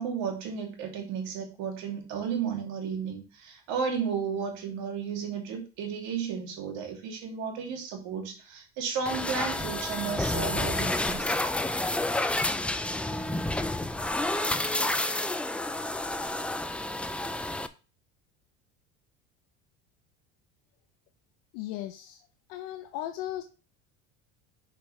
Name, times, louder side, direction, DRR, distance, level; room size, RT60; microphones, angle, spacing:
voice 1, 0.0-11.3, right 6 dB, 70° right, 1 dB, 2.6 m, -33 dB
sound 1, 9.1-17.7, left 2 dB, 5° left, 0.3 m, -30 dB
voice 2, 21.5-23.4, left 13 dB, 75° left, 7 dB, 0.7 m, -37 dB
6.9 x 5.2 x 3.3 m, 0.33 s
supercardioid pair, 115°, 30 cm